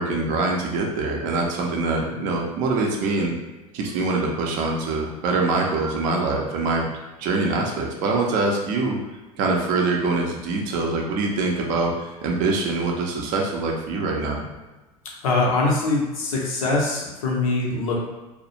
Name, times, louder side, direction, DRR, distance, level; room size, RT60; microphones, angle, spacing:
voice 1, 0.0-3.3 3.7-6.9 7.2-9.0 9.4-14.4, right 3 dB, 45° right, 0 dB, 0.5 m, -24 dB
voice 2, 15.2-18.0, left 3 dB, 65° left, -2 dB, 0.6 m, -23 dB
2.3 x 2.0 x 2.8 m, 1.1 s
figure-of-eight pair, 75°, 19 cm